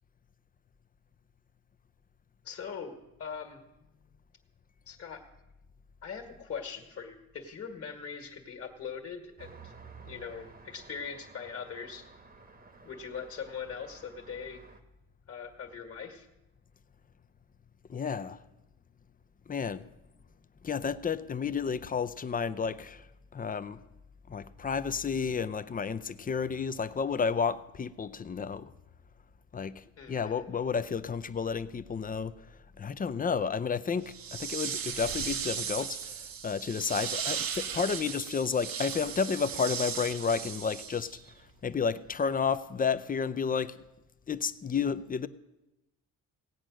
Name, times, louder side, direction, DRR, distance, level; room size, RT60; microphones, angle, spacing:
voice 1, 2.4-2.9 3.2-3.6 4.9-5.2 6.0-9.7 10.1-12.1 12.8-14.6 15.3-16.3 30.0-30.4, left 6 dB, 40° left, 1.7 m, -41 dB
Traffic noise roadway noise, 9.4-14.8, right 4 dB, 25° right, 1.1 m, -53 dB
voice 2, 17.9-18.4 19.5-19.9 20.6-23.1 23.3-23.8 24.3-28.7 29.5-32.3 32.8-41.1 41.6-43.7 44.3-45.3, left 6 dB, 25° left, 0.5 m, -31 dB
sound 1, 34.1-41.3, right 7 dB, 75° right, 1.2 m, -36 dB
17.0 x 8.9 x 6.3 m
cardioid pair, 115°, 35 cm